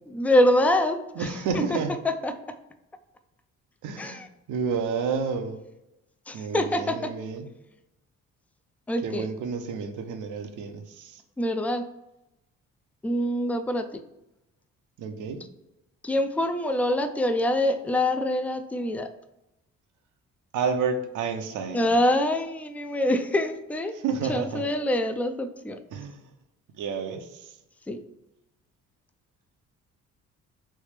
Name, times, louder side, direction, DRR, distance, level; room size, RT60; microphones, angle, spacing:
voice 1, 0.1-1.8 2.0-2.4 4.0-4.3 6.3-7.1 8.9-9.3 11.4-11.9 13.0-14.0 16.0-19.1 21.7-23.9 24.3-25.8 27.9-28.0, left 1 dB, 5° left, 8 dB, 0.3 m, -25 dB
voice 2, 1.2-1.9 3.8-5.6 6.3-7.4 9.0-11.2 15.0-15.4 20.5-21.9 24.0-24.6 25.9-26.2 26.8-27.2, right 5 dB, 80° right, 6 dB, 0.6 m, -30 dB
3.3 x 3.1 x 3.2 m, 0.91 s
cardioid pair, 90°, 30 cm